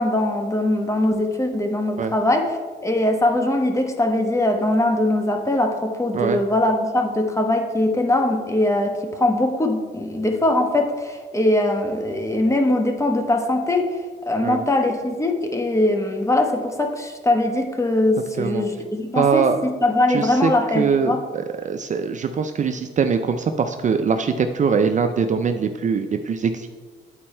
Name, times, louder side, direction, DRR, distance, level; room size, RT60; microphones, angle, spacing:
voice 1, 0.0-13.9 14.2-21.2, left 1 dB, 15° left, 4 dB, 1.1 m, -21 dB
voice 2, 19.2-19.6 20.1-26.7, right 6 dB, 40° right, 7 dB, 0.4 m, -22 dB
9.8 x 4.3 x 4.4 m, 1.5 s
cardioid pair, 90°, 20 cm